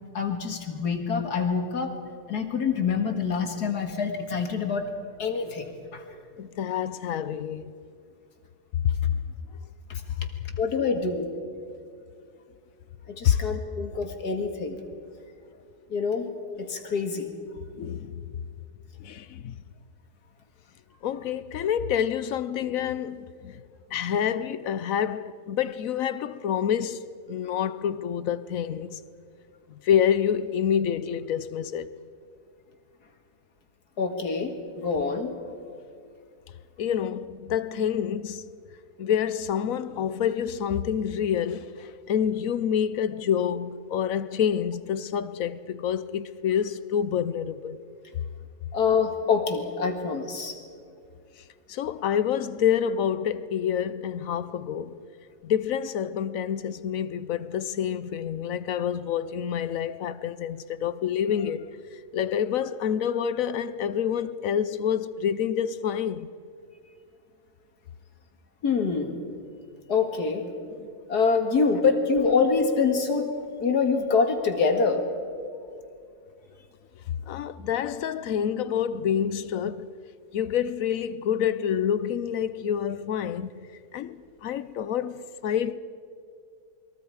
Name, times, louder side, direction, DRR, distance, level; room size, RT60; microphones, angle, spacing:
voice 1, 0.1-1.9 2.3-4.9 5.2-6.0 9.9-10.0 10.6-11.3 13.1-14.8 15.9-16.3 16.6-17.3 34.0-35.3 48.7-50.5 68.6-69.2 69.9-70.5 71.1-73.3 73.6-75.1 77.3-77.4, left 5 dB, 85° left, 2.4 m, -25 dB
voice 2, 6.4-7.7 13.2-13.4 17.7-18.2 19.0-19.5 21.0-23.6 23.9-29.0 29.7-31.9 36.8-38.5 39.0-47.8 51.7-55.0 55.4-61.7 62.1-66.3 77.3-79.9 80.3-83.5 83.9-85.8, left 8 dB, 65° left, 1.0 m, -27 dB
29.0 x 22.0 x 4.8 m
omnidirectional pair, 1.7 m